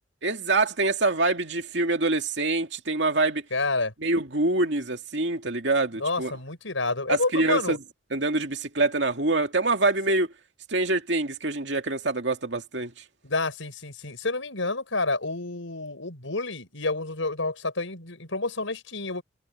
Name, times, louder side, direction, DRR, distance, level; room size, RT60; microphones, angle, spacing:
voice 1, 0.2-3.4 4.0-6.3 7.1-7.8 8.1-10.3 10.7-12.9, right 2 dB, 65° right, 2.3 m, -25 dB
voice 2, 3.5-3.9 6.0-7.8 13.2-19.2, left 3 dB, 80° left, 5.5 m, -29 dB
head